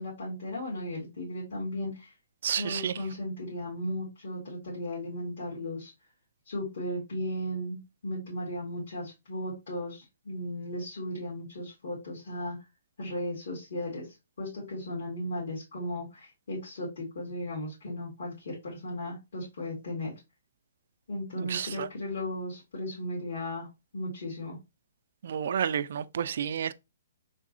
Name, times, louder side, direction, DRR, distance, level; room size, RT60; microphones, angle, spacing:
voice 1, 0.0-2.1 2.6-5.9 6.5-12.6 13.0-20.1 21.1-23.7 23.9-24.6, left 1 dB, 70° left, 2.1 m, -36 dB
voice 2, 2.4-2.9 21.4-21.9 25.2-26.7, right 8 dB, 60° right, 0.3 m, -30 dB
4.0 x 3.6 x 2.6 m
hypercardioid pair, 155°, 0 cm